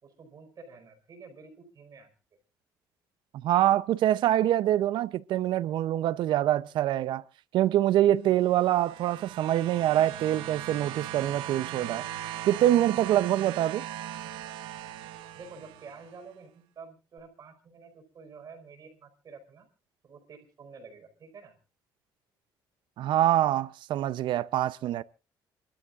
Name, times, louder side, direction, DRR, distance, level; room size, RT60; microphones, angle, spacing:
voice 1, 0.0-2.1 15.4-19.7 20.0-21.6, right 4 dB, 45° right, 4.9 m, -49 dB
voice 2, 3.4-7.2 7.5-12.1 12.5-13.8 23.0-25.0, right 13 dB, 70° right, 0.6 m, -25 dB
sound 1, 8.4-16.1 17.2-17.3, right 12 dB, 85° right, 1.2 m, -39 dB
28.5 x 12.5 x 2.5 m
cardioid pair, 110°, 8 cm